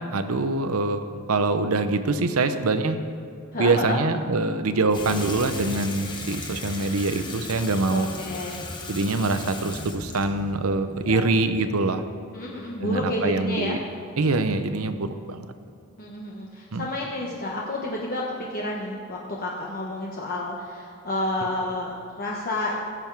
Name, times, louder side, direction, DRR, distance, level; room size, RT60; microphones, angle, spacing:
voice 1, 0.1-3.0 3.6-8.1 8.9-12.0 12.8-13.8 14.2-15.4 16.7-16.9, right 3 dB, 75° right, 10 dB, 0.7 m, -24 dB
voice 2, 3.5-4.0 7.9-8.6 11.0-11.3 12.3-13.8 16.0-22.7, left 1 dB, 45° left, -3 dB, 1.1 m, -30 dB
Water tap faucet / Sink (filling or washing), 4.9-11.9, left 2 dB, 20° left, 1.1 m, -37 dB
16.0 x 7.0 x 4.6 m, 2.4 s
head